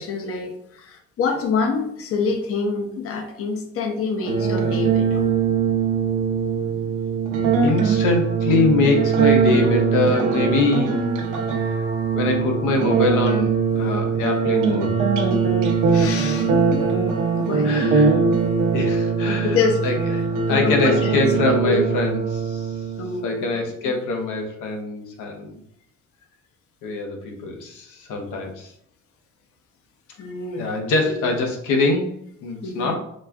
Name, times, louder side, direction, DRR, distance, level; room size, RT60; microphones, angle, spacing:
voice 1, 0.0-5.3 15.9-16.8 17.4-17.8 19.4-19.8 20.5-21.8 23.0-23.5 23.8-23.9 30.2-30.7 31.2-31.3 32.6-32.9, left 4 dB, 50° left, 4 dB, 0.6 m, -26 dB
sound 1, 4.2-23.2, right 5 dB, 85° right, 0.6 m, -21 dB
voice 2, 7.6-11.0 11.6-11.8 12.1-14.9 17.6-18.2 18.7-19.6 19.8-22.7 23.2-25.6 26.8-28.7 30.6-33.0, left 3 dB, 85° left, 2 dB, 0.7 m, -23 dB
4.1 x 2.3 x 2.2 m, 0.69 s
cardioid pair, 90°, 30 cm